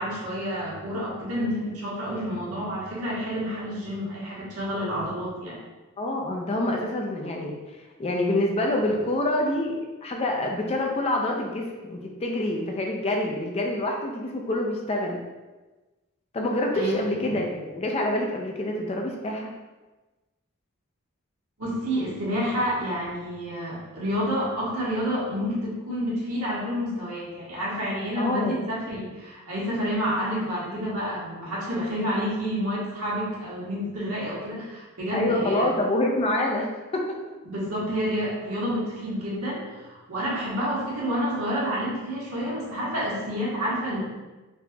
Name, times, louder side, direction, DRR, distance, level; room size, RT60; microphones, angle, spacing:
voice 1, 0.0-5.6 16.7-17.0 17.3-17.4 21.6-35.6 37.4-44.0, equal, 85° right, -7 dB, 1.3 m, -29 dB
voice 2, 6.0-7.5 8.0-9.7 10.0-15.2 16.3-19.5 28.2-28.6 35.1-37.2, left 1 dB, 25° left, 1 dB, 0.4 m, -26 dB
4.0 x 2.8 x 2.2 m, 1.2 s
head